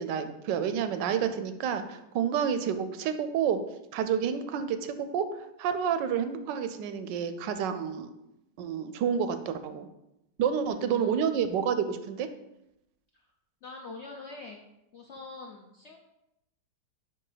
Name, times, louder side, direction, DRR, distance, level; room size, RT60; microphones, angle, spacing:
voice 1, 0.0-3.6 3.9-8.1 8.6-9.9 10.4-12.3, right 7 dB, 90° right, 10 dB, 1.3 m, -29 dB
voice 2, 10.6-11.4 13.6-14.6 14.9-16.0, left 4 dB, 70° left, 1 dB, 0.6 m, -44 dB
5.6 x 4.6 x 4.9 m, 0.88 s
omnidirectional pair, 1.9 m